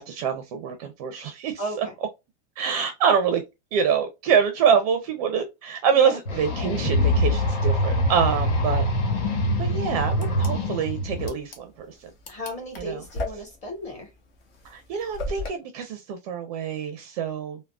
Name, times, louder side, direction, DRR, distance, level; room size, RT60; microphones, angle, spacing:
voice 1, 0.0-1.9 2.6-3.4 3.7-8.8 9.6-12.1 12.8-13.0 14.6-17.6, right 7 dB, 35° right, 0.4 m, -25 dB
voice 2, 1.6-1.9 5.9-6.2 12.3-14.1, equal, 20° left, 1.0 m, -34 dB
sound 1, 6.2-11.3, left 1 dB, 80° left, 1.3 m, -24 dB
sound 2, 10.1-15.5, left 2 dB, 60° left, 1.1 m, -36 dB
3.5 x 2.0 x 2.2 m
supercardioid pair, 165°, 35 cm